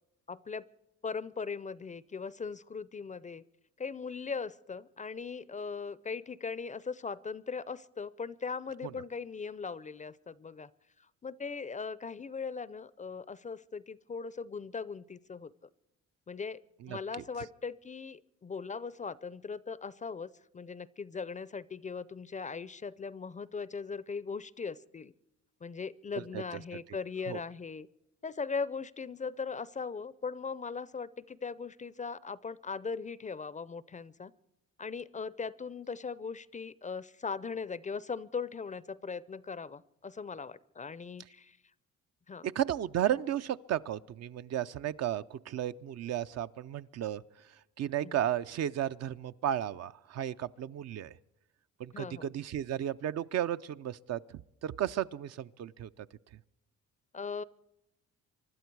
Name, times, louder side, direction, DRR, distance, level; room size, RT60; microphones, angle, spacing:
voice 1, 0.3-0.7 1.0-3.4 3.8-10.7 11.2-15.5 16.3-16.6 16.9-25.1 25.6-27.9 28.2-34.3 34.8-41.6 42.3-42.5 48.0-48.2 51.9-52.3 57.1-57.4, left 5 dB, 25° left, 19 dB, 0.5 m, -39 dB
voice 2, 42.4-47.2 47.8-51.2 51.8-54.2 54.6-56.1, right 11 dB, 60° right, 13 dB, 0.5 m, -34 dB
24.5 x 12.0 x 4.6 m, 0.88 s
cardioid pair, 90°, 30 cm